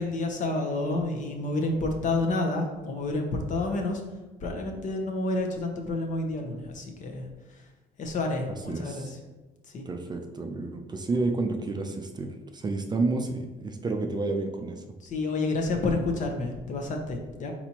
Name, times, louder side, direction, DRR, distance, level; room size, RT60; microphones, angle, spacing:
voice 1, 0.0-4.0 4.4-7.3 7.5-7.6 8.0-9.2 9.7-9.9 15.0-17.5, left 2 dB, 50° left, 3 dB, 0.9 m, -29 dB
voice 2, 8.7-9.1 9.9-14.8, right 3 dB, 25° right, 4 dB, 0.4 m, -30 dB
4.2 x 4.2 x 2.9 m, 1.2 s
cardioid pair, 110°, 17 cm